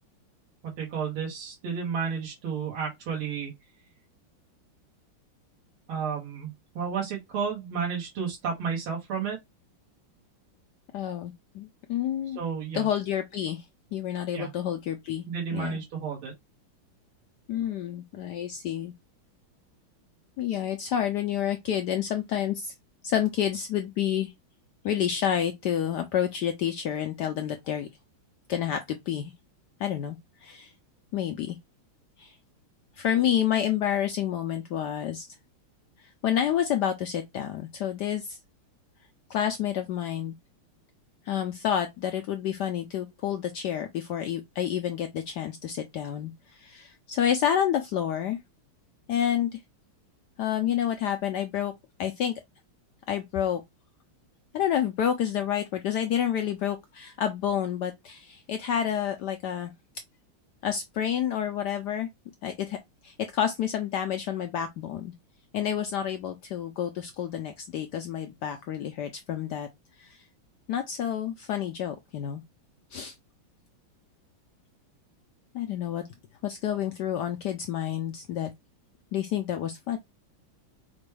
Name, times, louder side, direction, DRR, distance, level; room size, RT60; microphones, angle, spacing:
voice 1, 0.6-3.5 5.9-9.4 12.4-12.9 14.3-14.5 15.3-16.3, right 6 dB, 80° right, 2.1 m, -32 dB
voice 2, 10.9-12.4 12.7-13.6 13.9-15.2 15.5-15.8 17.5-18.9 20.4-22.7 23.0-24.3 24.8-27.9 28.5-29.3 29.8-30.2 30.4-30.7 31.1-31.6 32.2-32.3 33.0-35.3 36.0-38.4 39.3-40.3 41.3-48.4 49.1-49.6 50.4-51.7 52.0-52.4 53.1-53.6 54.5-59.7 60.6-62.1 62.4-62.8 63.0-65.1 65.5-69.7 70.0-70.2 70.7-72.4 72.9-73.1 75.5-76.0 76.4-78.5 79.1-80.0, left 10 dB, 80° left, 0.9 m, -29 dB
5.0 x 2.2 x 3.1 m
omnidirectional pair, 2.3 m